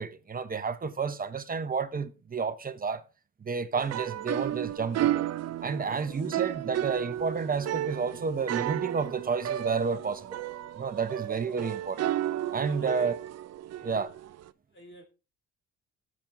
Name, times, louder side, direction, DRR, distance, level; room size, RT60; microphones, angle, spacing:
voice 1, 0.0-3.0 3.4-5.3 5.6-10.4 10.8-12.0 12.5-13.1 13.8-14.1, right 5 dB, 30° right, 0.8 m, -31 dB
sound 1, 3.8-14.5, right 12 dB, 55° right, 0.6 m, -33 dB
voice 2, 5.8-6.2 11.6-11.9 12.5-13.1 13.7-14.1 14.7-15.1, equal, 40° left, 3.9 m, -49 dB
15.0 x 7.4 x 2.6 m
cardioid pair, 95°, 31 cm